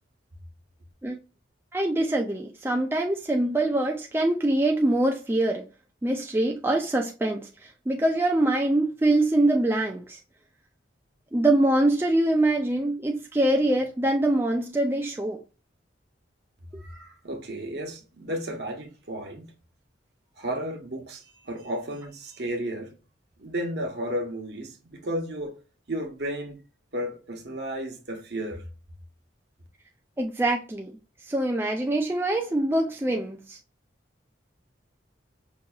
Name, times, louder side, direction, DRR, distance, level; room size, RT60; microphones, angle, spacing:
voice 1, 1.7-5.6 6.0-10.2 11.3-15.4 30.2-30.9 31.3-33.6, right 1 dB, 10° right, 0.3 m, -24 dB
voice 2, 16.8-19.5 20.4-22.9 23.4-25.6 25.9-26.6 26.9-28.6, equal, 55° right, 1.0 m, -33 dB
5.3 x 2.7 x 2.3 m
head